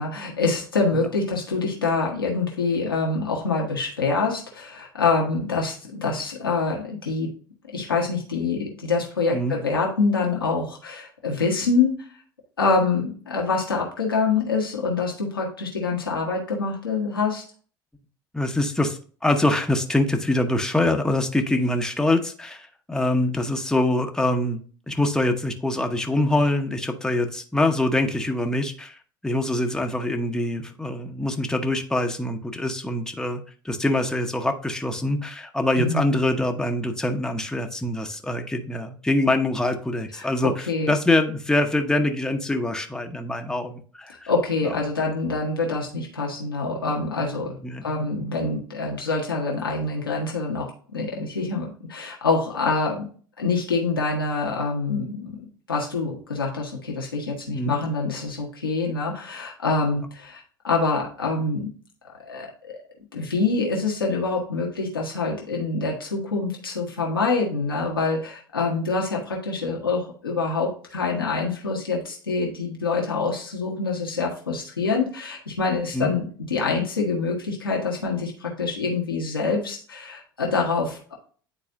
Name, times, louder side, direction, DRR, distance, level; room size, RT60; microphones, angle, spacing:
voice 1, 0.0-7.3 7.7-12.0 12.6-17.4 35.8-36.1 40.2-41.0 44.3-53.1 53.4-55.4 55.7-61.7 62.3-62.5 63.1-81.1, left 4 dB, 90° left, -2 dB, 1.2 m, -25 dB
voice 2, 18.3-29.0 29.2-44.3 47.6-47.9 57.5-57.7 75.9-76.1, left 1 dB, 5° left, 5 dB, 0.9 m, -24 dB
9.6 x 4.1 x 2.5 m, 0.43 s
hypercardioid pair, 70°, 12 cm